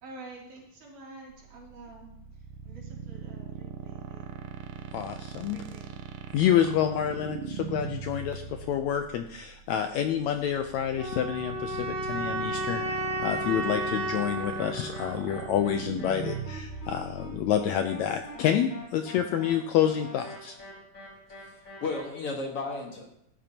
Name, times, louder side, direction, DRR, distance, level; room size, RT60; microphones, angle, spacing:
voice 1, 0.0-4.5 4.8-6.0 6.2-6.3 19.3-19.7, right 2 dB, 70° right, -3 dB, 4.4 m, -49 dB
sound 1, 1.3-18.5, right 7 dB, 90° right, 2.4 m, -40 dB
voice 2, 4.9-5.6 6.3-20.6, left 9 dB, 80° left, 6 dB, 1.7 m, -28 dB
sound 2, 10.9-16.0, right 1 dB, 20° right, 2.4 m, -33 dB
sound 3, 14.6-22.0, left 1 dB, 25° left, 5.2 m, -45 dB
voice 3, 21.3-23.1, left 3 dB, 50° left, 0 dB, 2.1 m, -34 dB
16.0 x 11.5 x 2.9 m, 0.76 s
omnidirectional pair, 3.7 m